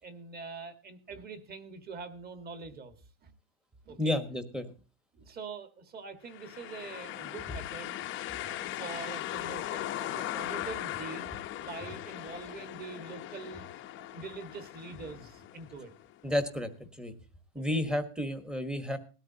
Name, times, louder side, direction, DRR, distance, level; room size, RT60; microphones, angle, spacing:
voice 1, 0.0-2.9 3.2-3.3 3.8-4.2 5.2-7.9 8.4-13.6 14.0-15.9 17.5-17.8, right 4 dB, 20° right, 9 dB, 1.6 m, -44 dB
voice 2, 4.0-4.7 16.2-16.7 17.0-17.1 17.5-19.0, left 1 dB, ahead, 7 dB, 1.2 m, -31 dB
sound 1, 6.3-16.1, left 14 dB, 25° left, 0.8 m, -39 dB
19.0 x 13.0 x 2.8 m, 0.34 s
supercardioid pair, 160°, 46 cm